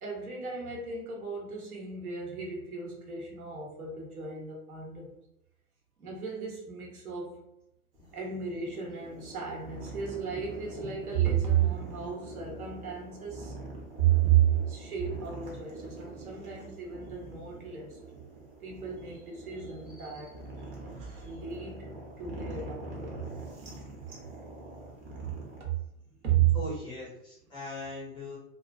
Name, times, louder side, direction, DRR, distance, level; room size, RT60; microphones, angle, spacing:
voice 1, 0.0-5.1 6.0-7.4 8.1-13.5 14.0-18.0 18.6-20.5 21.1-23.3 25.6-25.8 26.1-26.6, right 10 dB, 70° right, -1 dB, 1.0 m, -32 dB
sound 1, 7.9-25.6, right 1 dB, 25° right, 0.6 m, -44 dB
voice 2, 26.5-28.4, left 2 dB, 10° left, -7 dB, 0.4 m, -40 dB
2.4 x 2.3 x 2.3 m, 0.83 s
figure-of-eight pair, 95°, 45 cm